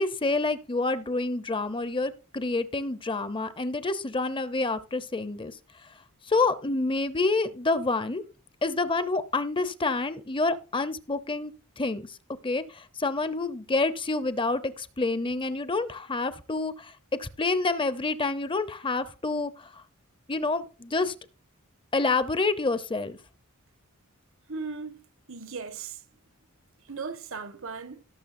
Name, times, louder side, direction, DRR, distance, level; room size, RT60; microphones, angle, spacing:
voice 1, 0.0-5.5 6.3-8.2 8.6-12.1 12.4-16.9 17.2-19.7 20.3-21.1 21.9-23.2, left 3 dB, 25° left, 0.8 m, -28 dB
voice 2, 24.5-25.0 25.3-26.0 26.9-28.0, right 4 dB, 65° right, 1.3 m, -37 dB
18.0 x 7.0 x 2.6 m
head